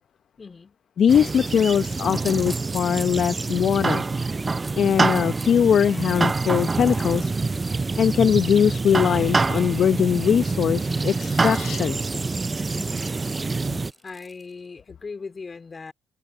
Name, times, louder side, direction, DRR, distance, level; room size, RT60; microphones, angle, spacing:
voice 1, 0.4-0.8 12.7-13.1 14.0-15.9, left 4 dB, 40° left, 3.5 m, -39 dB
voice 2, 1.0-4.0 4.8-7.3 8.0-12.0, left 8 dB, 65° left, 0.7 m, -21 dB
sound 1, 1.1-13.9, right 3 dB, 30° right, 0.3 m, -26 dB
sound 2, 2.2-5.5 5.8-14.5, right 1 dB, 15° right, 2.7 m, -46 dB
sound 3, 9.6-11.8, left 20 dB, 90° left, 4.9 m, -47 dB
supercardioid pair, 55°, 0 cm